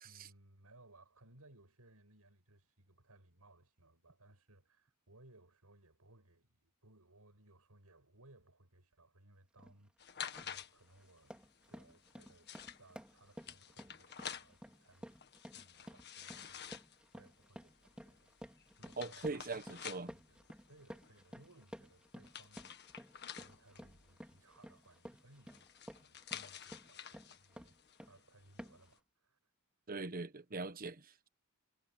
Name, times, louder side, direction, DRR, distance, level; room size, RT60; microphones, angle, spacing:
voice 1, 0.0-11.4 11.7-15.2 15.5-19.6 20.0-29.5, right 2 dB, 85° right, 5.9 m, -64 dB
sound 1, 9.6-9.8 10.2-10.6 11.0-28.2 28.6-28.9, equal, 5° right, 4.1 m, -54 dB
sound 2, 10.0-28.9, left 8 dB, 50° left, 1.8 m, -51 dB
voice 2, 19.0-20.1 29.9-31.3, right 3 dB, 40° right, 1.1 m, -42 dB
head